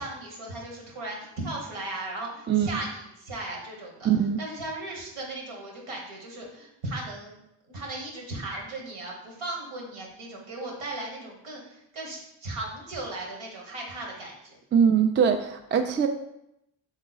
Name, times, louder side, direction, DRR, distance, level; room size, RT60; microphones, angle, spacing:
voice 1, 0.0-4.1 4.4-7.4 7.7-14.6, right 2 dB, 75° right, -1 dB, 1.3 m, -37 dB
voice 2, 4.0-4.4 14.7-16.1, right 7 dB, 25° right, 6 dB, 0.4 m, -22 dB
3.6 x 3.0 x 4.0 m, 0.81 s
supercardioid pair, 45°, 49 cm